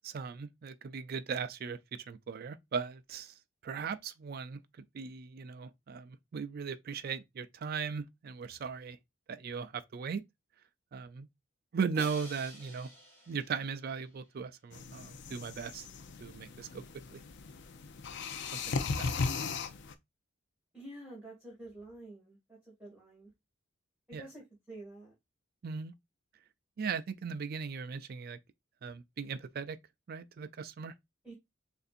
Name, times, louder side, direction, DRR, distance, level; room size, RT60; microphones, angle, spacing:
voice 1, 0.0-3.3 3.6-4.6 4.9-9.0 9.3-10.2 10.9-11.3 11.7-12.9 13.3-15.9 16.2-16.8 17.1-17.2 18.5-19.2 24.1-24.2 25.6-25.9 26.8-28.4 28.8-29.8 30.1-30.9, right 6 dB, 50° right, 0.4 m, -38 dB
Crash cymbal, 11.9-14.2, equal, 10° left, 2.2 m, -50 dB
sound 1, 14.7-19.9, left 4 dB, 60° left, 0.5 m, -37 dB
voice 2, 20.7-23.3 24.1-25.1 31.2-31.3, right 1 dB, 5° right, 2.2 m, -49 dB
6.7 x 2.6 x 2.5 m
head